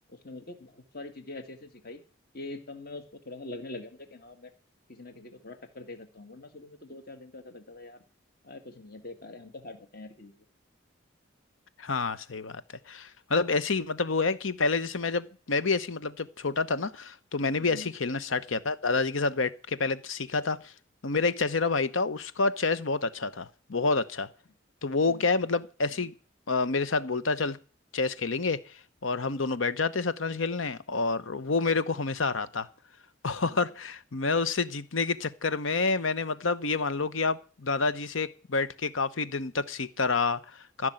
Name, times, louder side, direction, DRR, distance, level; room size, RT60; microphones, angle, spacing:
voice 1, 0.1-2.0 2.3-4.5 4.9-8.0 8.4-10.3 17.6-17.9 25.1-25.3, left 2 dB, 50° left, 2.0 m, -44 dB
voice 2, 11.8-12.6 12.9-20.7 21.0-24.3 24.8-26.1 26.5-27.6 27.9-28.7 29.0-32.7 33.2-40.9, left 4 dB, 85° left, 1.0 m, -28 dB
15.0 x 6.3 x 8.9 m
head